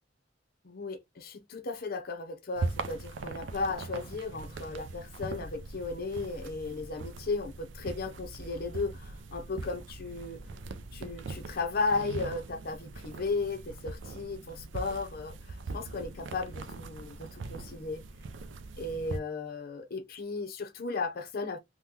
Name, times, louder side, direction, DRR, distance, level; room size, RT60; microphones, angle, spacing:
voice 1, 0.6-10.4 10.9-18.0 18.8-21.6, left 3 dB, 55° left, 0.6 m, -35 dB
sound 1, 2.5-19.2, right 3 dB, 80° right, 0.5 m, -41 dB
3.6 x 2.2 x 2.8 m
head